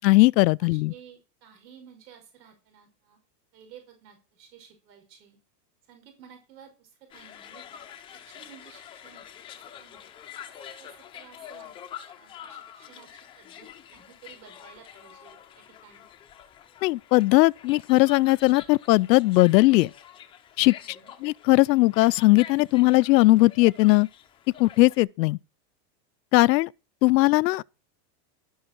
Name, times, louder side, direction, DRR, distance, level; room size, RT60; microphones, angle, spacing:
voice 1, 0.0-0.9 16.8-19.9 20.6-20.7 21.2-24.1 24.6-25.4 26.3-26.7 27.0-27.6, left 20 dB, 80° left, 0.6 m, -19 dB
voice 2, 0.6-3.2 3.5-5.4 5.9-9.2 9.8-10.1 10.5-11.7 12.1-16.1 20.8-21.1, right 8 dB, 85° right, 5.6 m, -53 dB
sound 1, 7.1-25.0, left 9 dB, 10° left, 0.6 m, -46 dB
12.0 x 10.0 x 4.5 m
supercardioid pair, 180°, 49 cm